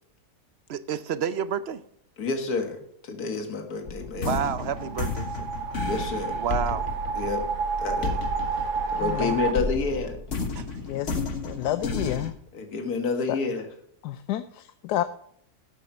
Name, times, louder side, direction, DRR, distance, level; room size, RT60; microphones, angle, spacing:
voice 1, 0.7-1.8 4.1-5.5 6.4-6.8 10.5-10.6, right 8 dB, 65° right, 14 dB, 0.6 m, -29 dB
voice 2, 2.2-4.4 5.8-6.4 7.2-7.5 7.8-8.2 8.5-10.2 12.5-13.7, left 4 dB, 70° left, 5 dB, 2.0 m, -29 dB
sound 1, 3.8-9.2 9.5-12.3, left 4 dB, 50° left, 1.6 m, -32 dB
sound 2, 4.5-9.5, right 5 dB, 90° right, 1.5 m, -30 dB
voice 3, 9.0-9.4 10.9-12.3 14.0-15.0, left 13 dB, 85° left, 11 dB, 1.2 m, -30 dB
12.0 x 8.3 x 5.5 m, 0.68 s
omnidirectional pair, 1.7 m